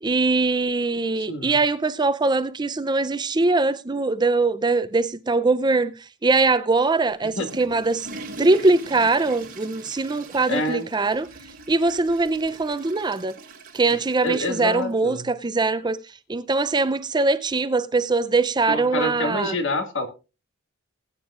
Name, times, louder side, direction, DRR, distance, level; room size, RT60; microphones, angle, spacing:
voice 1, 0.0-5.9 6.2-8.1 8.4-11.3 11.7-13.3 13.7-16.0 16.3-19.5, right 3 dB, 20° right, 0.5 m, -22 dB
voice 2, 1.2-1.6 7.4-7.5 10.5-10.9 13.8-14.0 14.2-15.2 18.6-20.1, left 2 dB, 60° left, 1.9 m, -27 dB
Water / Toilet flush, 7.1-14.9, right 2 dB, 40° right, 4.4 m, -42 dB
20.0 x 9.0 x 2.5 m
head